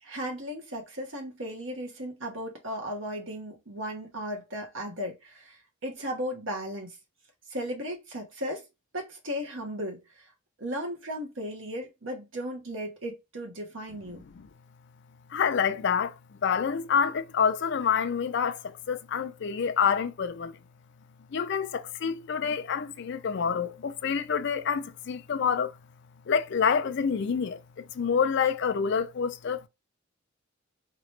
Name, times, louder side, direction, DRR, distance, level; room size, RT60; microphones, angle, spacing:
voice 1, 0.0-7.0 7.5-8.6 8.9-10.0 10.6-14.2, equal, 65° right, 1.2 m, -36 dB
voice 2, 15.3-20.6 21.3-25.8 26.3-29.7, left 6 dB, 55° left, 0.4 m, -27 dB
3.9 x 3.0 x 3.2 m
head